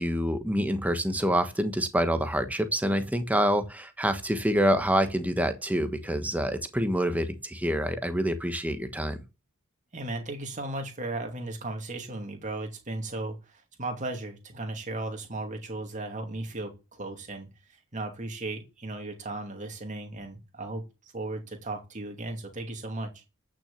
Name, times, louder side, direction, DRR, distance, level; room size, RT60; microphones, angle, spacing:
voice 1, 0.0-9.2, equal, 5° right, 1.3 m, -26 dB
voice 2, 9.9-17.5 17.9-23.2, right 2 dB, 35° right, 2.6 m, -36 dB
13.5 x 6.3 x 7.3 m
head